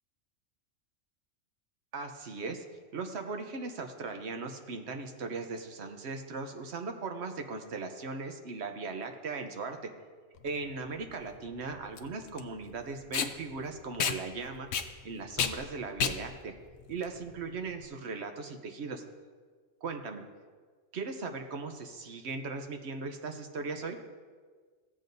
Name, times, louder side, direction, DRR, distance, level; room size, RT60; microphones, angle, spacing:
voice 1, 1.9-2.6 2.9-9.8 10.4-14.7 15.0-16.5 16.9-19.0 19.8-20.2 20.9-24.0, right 4 dB, 65° right, 5 dB, 1.1 m, -38 dB
Packing tape duct tape, 10.4-17.8, left 7 dB, 80° left, 1.0 m, -34 dB
15.5 x 7.5 x 2.6 m, 1.5 s
omnidirectional pair, 1.3 m